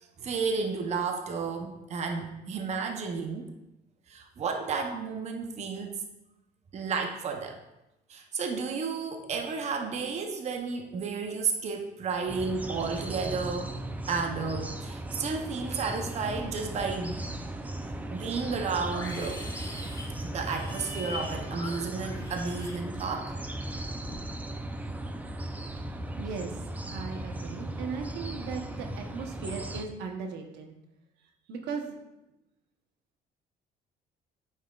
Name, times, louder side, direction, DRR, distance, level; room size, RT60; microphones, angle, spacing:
voice 1, 0.0-3.5 4.1-6.0 6.7-7.6 8.1-13.7 14.1-17.2 18.1-19.5 20.2-23.3, right 5 dB, 40° right, 4 dB, 0.7 m, -32 dB
sound 1, 12.3-29.9, right 1 dB, 10° right, 0.4 m, -37 dB
Livestock farm animals working animals, 15.9-16.5 16.7-17.5 17.8-23.4 23.7-24.2, left 2 dB, 20° left, 1.3 m, -44 dB
voice 2, 26.2-26.6 26.9-30.8 31.5-31.9, right 5 dB, 85° right, 4 dB, 1.0 m, -37 dB
8.7 x 5.4 x 2.4 m, 0.93 s
cardioid pair, 110°, 17 cm